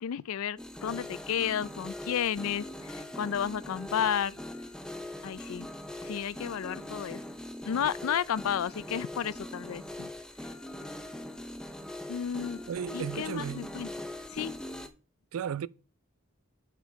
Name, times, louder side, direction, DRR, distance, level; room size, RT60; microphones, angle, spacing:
voice 1, 0.0-4.4 5.2-5.7 6.0-7.2 7.6-10.1 12.1-12.6 12.9-13.9 14.3-14.5, left 8 dB, 85° left, 0.4 m, -32 dB
sound 1, 0.6-14.9, left 1 dB, 5° left, 0.5 m, -41 dB
voice 2, 12.7-13.7 15.3-15.7, right 8 dB, 90° right, 0.4 m, -34 dB
8.1 x 5.1 x 4.6 m
head